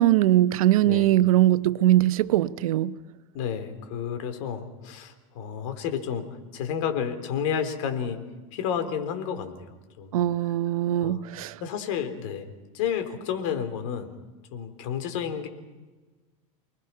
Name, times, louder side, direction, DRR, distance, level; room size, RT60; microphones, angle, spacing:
voice 1, 0.0-3.0 10.1-11.6, right 14 dB, 80° right, 14 dB, 0.9 m, -21 dB
voice 2, 3.3-6.2 6.5-8.2 8.5-10.2 11.0-11.2 11.6-12.5 12.7-14.2 14.5-15.5, left 8 dB, 65° left, 7 dB, 3.6 m, -31 dB
29.5 x 20.0 x 5.9 m, 1.3 s
supercardioid pair, 135°, 18 cm